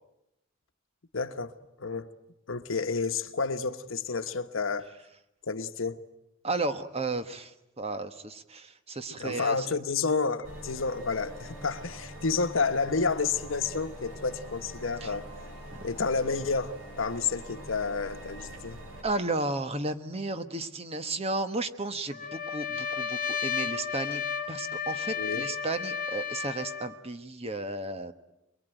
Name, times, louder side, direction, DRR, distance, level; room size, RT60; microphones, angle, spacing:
voice 1, 1.1-2.1 2.5-4.9 5.5-6.0 9.2-15.3 15.8-18.8 25.1-25.5, left 4 dB, 75° left, 1.2 m, -30 dB
voice 2, 6.4-9.7 15.0-15.1 15.7-15.8 19.0-24.2 24.5-28.1, right 2 dB, 30° right, 1.2 m, -33 dB
sound 1, 10.4-19.0, equal, 75° right, 6.4 m, -44 dB
Trumpet, 22.1-27.0, left 7 dB, 45° left, 1.4 m, -33 dB
23.5 x 23.5 x 9.1 m
head